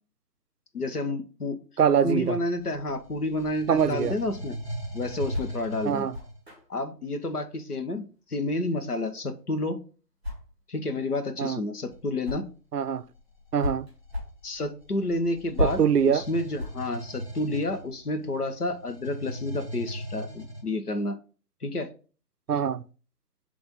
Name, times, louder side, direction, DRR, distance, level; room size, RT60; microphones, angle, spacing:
voice 1, 0.7-1.6 2.0-4.5 4.9-6.0 6.7-9.8 10.7-12.5 14.4-21.2 21.6-21.9, left 2 dB, 65° left, 1.2 m, -30 dB
voice 2, 1.8-2.4 3.7-4.2 5.8-6.2 11.4-11.6 12.7-13.0 13.5-13.9 15.6-16.3 22.5-22.8, right 8 dB, 70° right, 0.5 m, -24 dB
sound 1, 2.5-6.5 11.8-12.0 12.8-20.6, right 1 dB, 35° left, 2.1 m, -40 dB
sound 2, 4.4-12.8 13.1-17.9, left 2 dB, 5° left, 1.4 m, -36 dB
5.7 x 3.5 x 5.3 m
figure-of-eight pair, 175°, 49 cm